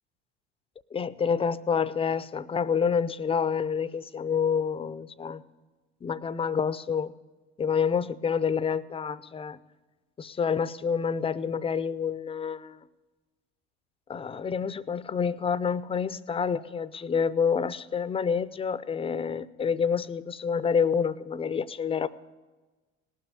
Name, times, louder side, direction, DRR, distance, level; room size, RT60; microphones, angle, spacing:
voice 1, 0.9-5.4 6.0-7.1 7.6-9.6 10.2-12.8 14.1-22.1, left 6 dB, 15° left, 17 dB, 0.5 m, -28 dB
18.0 x 6.3 x 8.4 m, 1.2 s
hypercardioid pair, 85°, 35 cm